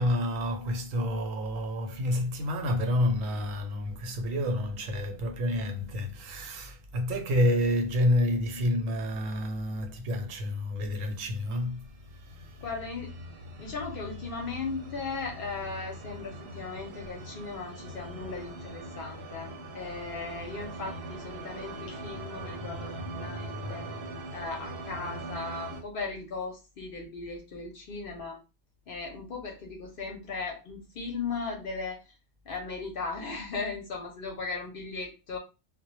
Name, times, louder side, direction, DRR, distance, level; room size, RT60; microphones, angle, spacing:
voice 1, 0.0-11.9, left 1 dB, 90° right, 1.0 m, -29 dB
sound 1, 11.5-25.8, right 1 dB, 65° right, 0.8 m, -41 dB
voice 2, 12.6-13.1 13.6-23.9 24.3-28.4 28.9-32.0 32.5-35.4, left 4 dB, 60° left, 0.6 m, -37 dB
2.1 x 2.0 x 2.9 m
omnidirectional pair, 1.3 m